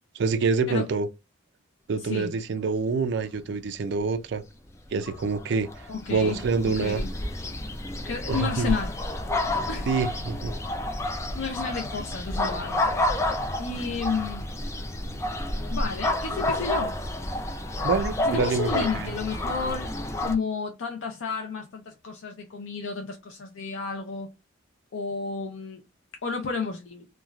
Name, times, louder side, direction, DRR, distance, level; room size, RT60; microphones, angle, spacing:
voice 1, 0.1-1.1 1.9-4.4 4.9-7.0 8.3-8.7 9.9-10.5 17.8-19.1, right 4 dB, 60° right, 0.4 m, -26 dB
sound 1, 5.0-20.3, left 1 dB, 15° left, 0.3 m, -30 dB
voice 2, 5.9-6.4 6.8-7.1 8.0-9.0 9.7-9.9 11.2-12.9 13.6-14.5 15.6-17.0 18.2-19.9 20.2-24.3 24.9-25.8 26.2-27.1, left 4 dB, 70° left, 0.5 m, -31 dB
3.1 x 2.3 x 2.3 m
head